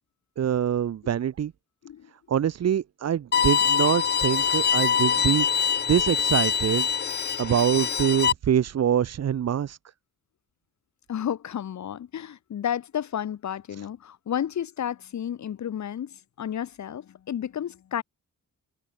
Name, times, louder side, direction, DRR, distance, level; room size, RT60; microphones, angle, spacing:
voice 1, 0.4-1.5 2.3-5.6 5.9-6.9 7.4-9.8, right 9 dB, 55° right, 1.9 m, -24 dB
Bowed string instrument, 3.3-8.3, left 7 dB, 35° left, 0.8 m, -24 dB
voice 2, 11.1-18.0, left 9 dB, 65° left, 5.6 m, -32 dB
open air
wide cardioid pair, 170°, 30 cm